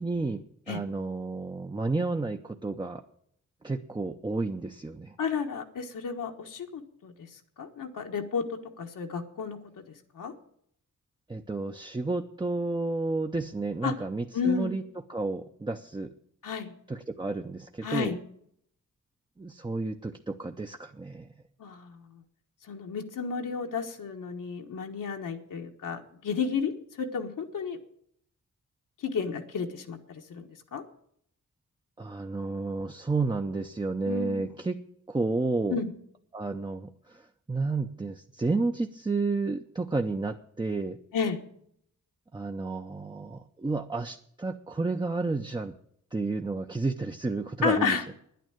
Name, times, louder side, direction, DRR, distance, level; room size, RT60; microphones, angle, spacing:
voice 1, 0.0-3.0 3.6-5.1 11.3-14.8 15.1-16.1 16.9-18.1 19.4-21.3 32.0-34.8 35.1-35.8 36.3-37.2 37.5-41.0 42.3-45.7 46.1-48.0, right 3 dB, 15° right, 4 dB, 0.6 m, -31 dB
voice 2, 5.2-7.1 7.6-9.8 10.1-10.3 13.8-13.9 14.3-14.7 16.4-16.7 17.8-18.2 21.6-22.1 22.7-27.8 29.0-30.8 34.1-34.5 35.7-35.9 41.1-41.4 47.6-48.1, left 5 dB, 80° left, 3 dB, 1.4 m, -32 dB
10.0 x 9.3 x 8.8 m, 0.69 s
wide cardioid pair, 120°, 31 cm